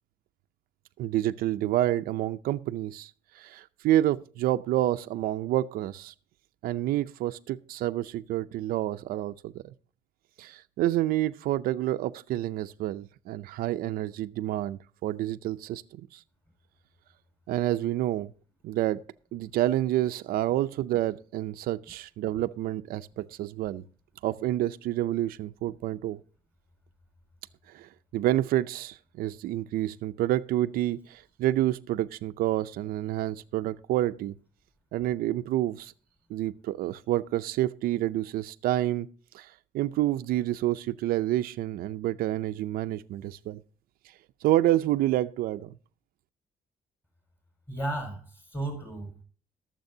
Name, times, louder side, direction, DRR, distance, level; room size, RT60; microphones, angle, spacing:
voice 1, 1.0-3.1 3.4-6.1 6.6-9.7 10.4-16.2 17.5-18.3 18.6-19.0 19.3-23.8 24.2-26.2 27.7-34.4 34.9-35.9 36.3-39.1 39.3-39.5 39.7-43.6 44.4-45.7, right 14 dB, 85° right, 0.5 m, -28 dB
voice 2, 47.7-49.2, right 2 dB, 15° left, 4.7 m, -34 dB
22.5 x 7.5 x 2.7 m
cardioid pair, 160°, 15 cm